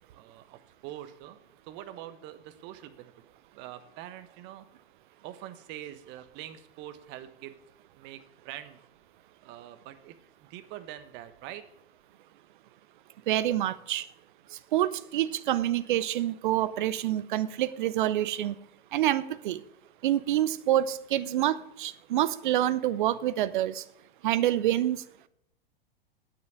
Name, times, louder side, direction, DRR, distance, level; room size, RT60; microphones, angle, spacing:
voice 1, 0.1-1.4 1.6-3.1 3.5-4.7 5.2-7.6 7.9-8.8 9.4-11.6, right 12 dB, 35° right, 10 dB, 1.1 m, -44 dB
voice 2, 13.3-14.0 14.7-18.5 18.9-19.6 20.0-23.8 24.2-25.0, right 13 dB, 55° right, 15 dB, 0.8 m, -27 dB
9.8 x 8.2 x 7.2 m, 0.78 s
figure-of-eight pair, 95°, 30 cm